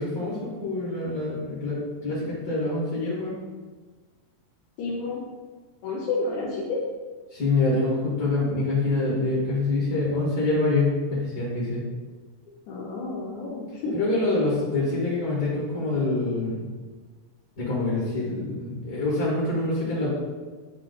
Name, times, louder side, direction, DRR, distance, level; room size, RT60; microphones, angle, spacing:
voice 1, 0.0-3.3 7.3-11.8 13.9-16.7 17.6-20.1, left 2 dB, 35° left, -8 dB, 1.5 m, -26 dB
voice 2, 4.8-5.2 5.8-6.8 12.7-14.0, left 3 dB, 70° left, -6 dB, 2.1 m, -30 dB
9.4 x 3.1 x 3.8 m, 1.4 s
omnidirectional pair, 4.0 m